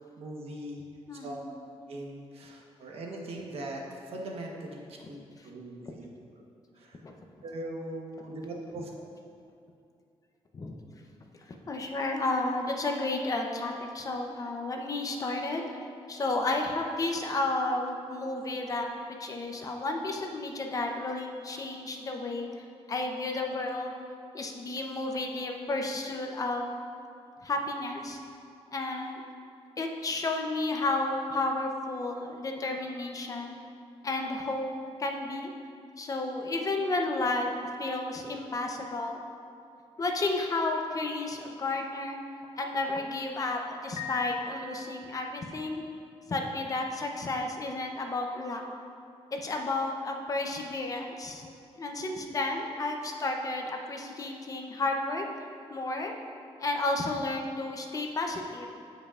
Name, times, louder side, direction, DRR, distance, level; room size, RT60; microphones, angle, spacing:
voice 1, 0.2-0.9 1.2-1.6 1.9-4.8 5.1-6.1 6.7-7.0 7.4-9.0, right 1 dB, 65° right, -1 dB, 1.1 m, -40 dB
voice 2, 1.1-1.5 7.0-7.1 10.5-10.8 11.7-15.8 16.1-18.9 19.2-23.9 24.3-26.7 27.4-28.2 28.7-29.2 29.8-33.5 34.0-34.6 35.0-35.5 36.0-39.2 40.0-42.2 42.6-45.8 46.3-48.6 49.3-51.5 51.8-55.4 55.7-56.1 56.6-58.7, left 2 dB, 30° left, 2 dB, 0.7 m, -32 dB
Piano, 44.0-45.4, left 7 dB, 65° left, 0.8 m, -39 dB
16.0 x 5.4 x 2.5 m, 2.5 s
cardioid pair, 140°, 11 cm